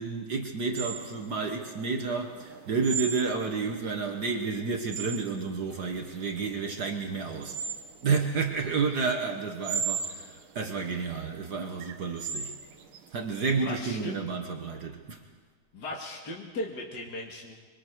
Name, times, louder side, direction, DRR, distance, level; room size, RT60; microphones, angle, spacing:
voice 1, 0.0-7.6 8.0-12.5 13.1-15.2, right 4 dB, 75° right, 4 dB, 0.9 m, -30 dB
sound 1, 0.8-14.2, right 6 dB, 90° right, 3.1 m, -38 dB
voice 2, 13.6-14.2 15.7-17.5, left 1 dB, 35° left, -2 dB, 2.0 m, -37 dB
26.5 x 23.5 x 4.7 m, 1.4 s
omnidirectional pair, 3.8 m